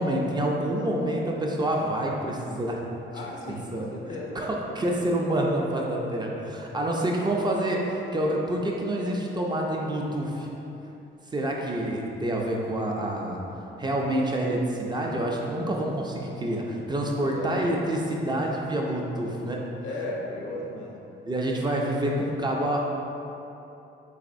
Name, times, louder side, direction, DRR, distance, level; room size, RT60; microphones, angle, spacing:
voice 1, 0.0-2.8 3.1-3.2 3.5-3.9 4.3-10.5 11.3-19.6 21.3-22.8, right 1 dB, 20° right, -1 dB, 0.4 m, -27 dB
voice 2, 3.1-4.4 17.1-17.6 19.8-21.1, left 2 dB, 75° left, -1 dB, 0.6 m, -36 dB
4.0 x 2.9 x 2.5 m, 2.9 s
cardioid pair, 100°, 21 cm